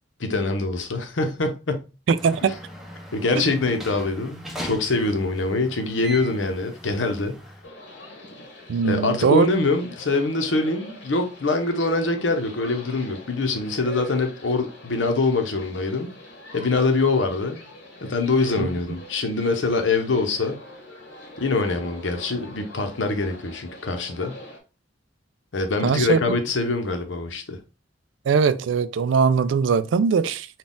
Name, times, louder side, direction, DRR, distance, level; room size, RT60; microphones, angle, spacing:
voice 1, 0.2-1.9 3.1-7.4 8.8-16.1 16.5-17.6 18.0-20.6 21.4-24.4 25.5-27.6, left 3 dB, 85° left, 0.8 m, -24 dB
voice 2, 2.1-2.6 8.7-9.5 18.6-18.7 25.8-26.2 28.3-30.5, right 5 dB, 80° right, 0.3 m, -20 dB
sound 1, 2.2-7.7, equal, ahead, 0.6 m, -39 dB
sound 2, 7.6-24.6, left 1 dB, 65° left, 1.3 m, -44 dB
4.0 x 2.3 x 3.6 m
head